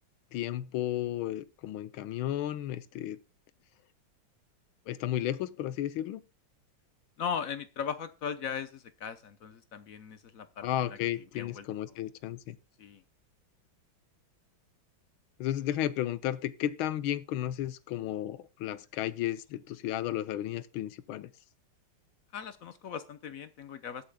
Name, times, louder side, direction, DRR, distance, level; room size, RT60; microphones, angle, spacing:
voice 1, 0.3-3.2 4.9-6.2 10.6-12.6 15.4-21.3, left 12 dB, 85° left, 1.5 m, -33 dB
voice 2, 7.2-11.7 12.8-13.0 22.3-24.0, left 7 dB, 60° left, 0.9 m, -38 dB
21.0 x 8.3 x 2.2 m
omnidirectional pair, 2.2 m